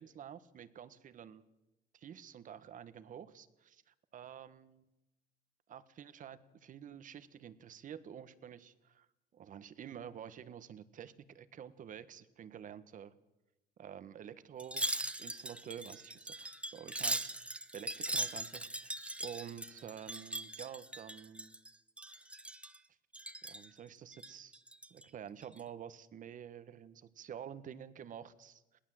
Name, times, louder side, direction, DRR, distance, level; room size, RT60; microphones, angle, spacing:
voice 1, 0.0-1.4 1.9-4.9 5.7-9.1 9.3-13.1 13.8-14.9 15.2-17.3 17.7-21.5 23.4-24.6 24.9-28.8, right 9 dB, 50° right, 14 dB, 1.3 m, -49 dB
Wind chime, 14.6-21.7 22.0-22.8 23.1-23.7 24.1-25.0 25.4-25.6, right 1 dB, 5° right, 0.9 m, -40 dB
22.0 x 17.0 x 7.7 m, 0.95 s
cardioid pair, 110°, 17 cm